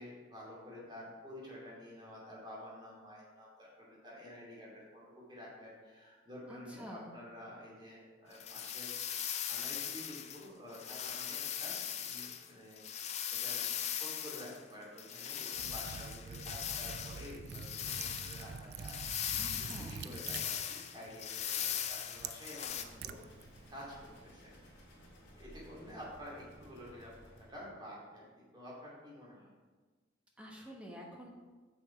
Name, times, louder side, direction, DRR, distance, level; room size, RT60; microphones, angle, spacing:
voice 1, 0.0-8.9 9.5-12.8 13.3-19.0 19.9-23.2 23.7-23.8 24.2-24.5 25.4-27.1 27.5-28.2 28.5-29.5, left 1 dB, 25° right, -5 dB, 2.5 m, -50 dB
voice 2, 6.5-7.1 19.4-20.0 30.4-31.3, equal, 5° right, -1 dB, 1.1 m, -48 dB
sound 1, 8.3-10.5 10.7-14.6 15.0-22.8, left 9 dB, 35° left, 0.4 m, -39 dB
Liquid, 15.5-23.8, right 6 dB, 55° right, 0.3 m, -47 dB
sound 2, 22.6-27.7, equal, 65° left, 2.5 m, -57 dB
6.9 x 6.2 x 4.5 m, 1.3 s
head